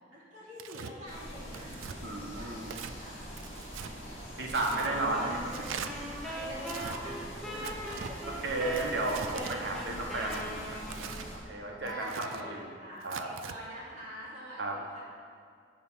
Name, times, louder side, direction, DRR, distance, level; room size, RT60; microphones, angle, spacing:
voice 1, 0.1-1.8 2.4-2.6 3.0-3.2 6.2-7.2 7.4-8.2 11.7-15.0, equal, 40° right, -8 dB, 2.5 m, -44 dB
Tearing, 0.6-0.9 1.5-2.0 2.6-3.0 3.4-3.9 4.5-4.9 5.5-5.9 6.6-7.0 7.6-8.1 8.7-9.6 10.3-11.3 11.9-12.4 13.0-13.6, right 8 dB, 85° right, 0.4 m, -42 dB
sound 1, 1.1-11.4, equal, 30° left, 2.0 m, -44 dB
voice 2, 2.0-2.7 4.4-5.5 6.0-6.1 7.5-7.7 8.4-10.7 11.4-12.7 13.0-13.3 14.6-14.8, right 2 dB, 60° right, 0 dB, 1.0 m, -33 dB
sound 2, 4.7-11.3, equal, ahead, 0.9 m, -41 dB
8.3 x 5.9 x 5.5 m, 2.2 s
head